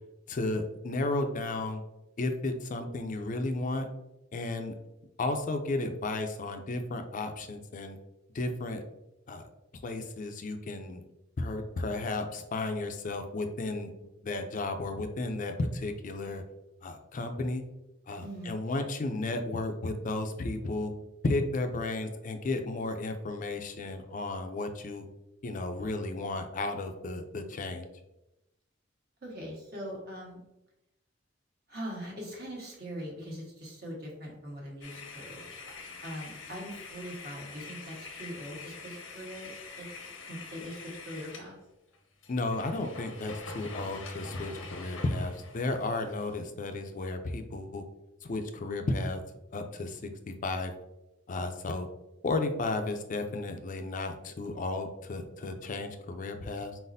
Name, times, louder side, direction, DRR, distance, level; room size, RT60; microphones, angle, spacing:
voice 1, 0.3-1.8 2.2-3.9 4.3-4.7 5.2-8.0 8.3-8.8 9.3-9.4 9.8-11.0 11.4-16.4 16.8-17.6 18.1-20.9 21.2-25.1 25.4-27.9 42.3-47.8 48.3-49.2 49.5-50.1 50.4-50.7 51.3-51.9 52.2-56.8, left 2 dB, 40° left, 6 dB, 0.4 m, -33 dB
voice 2, 18.2-18.5 29.2-30.4 31.7-35.5 36.0-39.9 40.3-41.5, equal, 55° right, -2 dB, 1.3 m, -41 dB
sound 1, 34.8-41.5 41.9-42.0 42.2-46.3, left 3 dB, 90° left, 0.8 m, -45 dB
4.1 x 4.0 x 2.6 m, 0.93 s
head